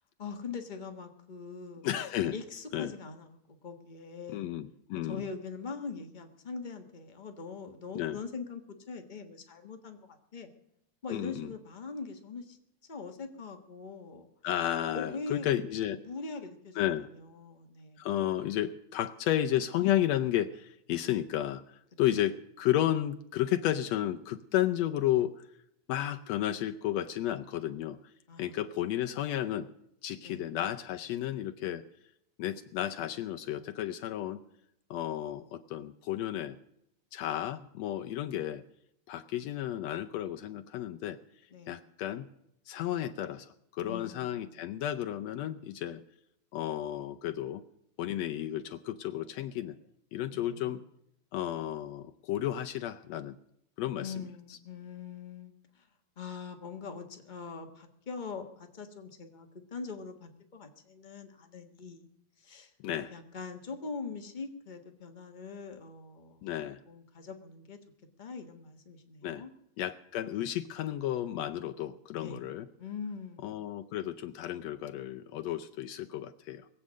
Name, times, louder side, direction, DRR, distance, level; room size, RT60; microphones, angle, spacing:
voice 1, 0.2-1.8 2.3-4.5 5.0-8.6 8.9-10.5 11.0-12.6 12.9-14.3 14.9-15.5 16.0-16.8 17.1-18.0 28.3-28.6 30.2-30.4 41.5-41.8 43.8-44.6 50.3-50.8 53.9-55.8 56.2-62.1 62.4-62.7 63.1-66.4 66.9-67.8 68.2-69.5 72.2-72.4 72.8-73.6, left 4 dB, 40° left, 5 dB, 0.6 m, -42 dB
voice 2, 1.8-2.3 2.7-2.9 4.3-5.3 7.9-8.2 11.1-11.5 14.4-16.0 16.8-17.1 18.0-21.6 22.0-25.3 25.9-28.0 28.4-29.7 30.0-31.8 32.4-34.4 34.9-36.6 37.1-38.6 39.1-41.2 41.7-42.3 42.7-46.0 46.5-47.6 48.0-49.8 50.1-50.8 51.3-53.4 53.8-54.1 62.8-63.1 66.4-66.8 69.2-69.4 69.8-72.7 73.4-76.6, left 12 dB, 75° left, 8 dB, 1.8 m, -32 dB
21.5 x 8.5 x 6.2 m, 0.78 s
omnidirectional pair, 3.3 m